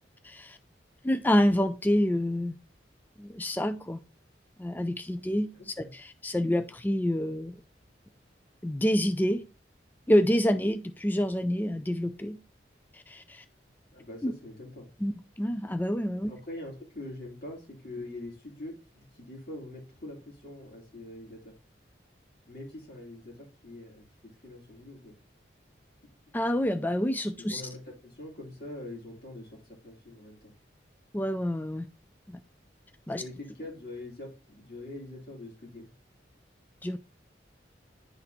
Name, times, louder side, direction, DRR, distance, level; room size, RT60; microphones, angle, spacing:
voice 1, 0.2-0.6 1.0-2.5 3.2-4.0 4.6-5.5 5.8-7.5 8.6-9.4 10.1-12.4 12.9-13.4 14.2-14.3 15.0-16.3 26.3-27.6 31.1-31.9 32.3-32.4 33.1-33.2 36.8-37.0, equal, 10° left, 0.3 m, -27 dB
voice 2, 5.5-5.9 13.9-14.9 16.3-21.5 22.5-24.0 24.4-25.2 27.4-30.5 33.2-35.9, left 1 dB, 55° left, 3.1 m, -43 dB
10.5 x 4.2 x 2.8 m
head